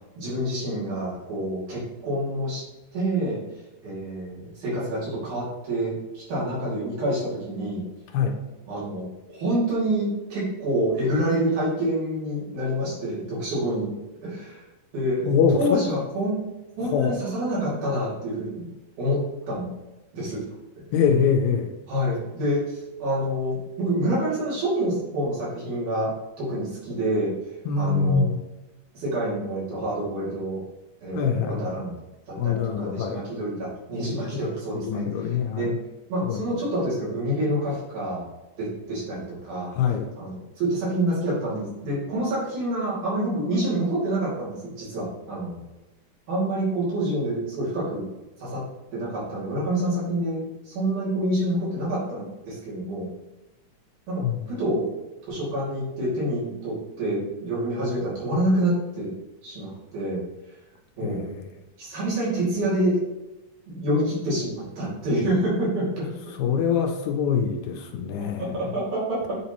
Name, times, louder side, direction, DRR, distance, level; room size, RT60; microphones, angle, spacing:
voice 1, 0.2-2.6 2.9-3.4 3.8-7.8 8.7-13.9 14.2-14.6 14.9-15.3 15.6-16.5 16.8-18.7 19.0-19.7 20.1-20.4 21.9-26.1 26.4-27.3 27.8-28.3 28.9-30.6 31.0-31.9 32.4-35.7 36.1-38.3 38.6-39.7 40.2-45.6 46.3-48.1 48.4-48.6 48.9-53.1 54.1-54.9 55.3-59.1 59.4-60.2 61.0-61.2 61.8-63.0 63.7-66.0 68.4-69.4, right 1 dB, 75° right, -7 dB, 3.9 m, -27 dB
voice 2, 15.3-15.8 16.8-17.2 20.9-21.7 27.7-28.4 31.1-31.7 32.4-33.2 34.8-35.7 36.3-36.4 39.7-40.1 54.2-54.4 61.0-61.3 66.4-68.6, left 6 dB, 75° left, 3 dB, 1.9 m, -24 dB
8.7 x 4.2 x 3.0 m, 1.0 s
omnidirectional pair, 3.6 m